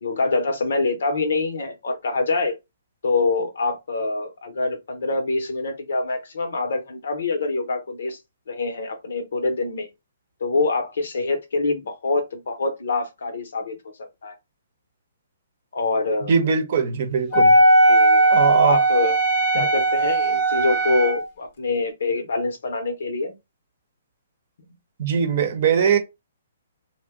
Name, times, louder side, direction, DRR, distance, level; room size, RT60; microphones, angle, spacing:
voice 1, 0.0-2.6 3.0-8.2 8.5-9.9 10.4-14.3 15.7-16.3 17.9-18.3 18.6-19.2 19.5-23.3, left 3 dB, 70° left, 0.8 m, -25 dB
voice 2, 16.3-17.6 18.3-18.8 19.5-19.7 25.0-26.0, right 6 dB, 55° right, 0.7 m, -21 dB
Wind instrument woodwind instrument, 17.3-21.2, right 2 dB, 40° left, 0.7 m, -17 dB
2.7 x 2.2 x 3.5 m
hypercardioid pair, 135°, 0 cm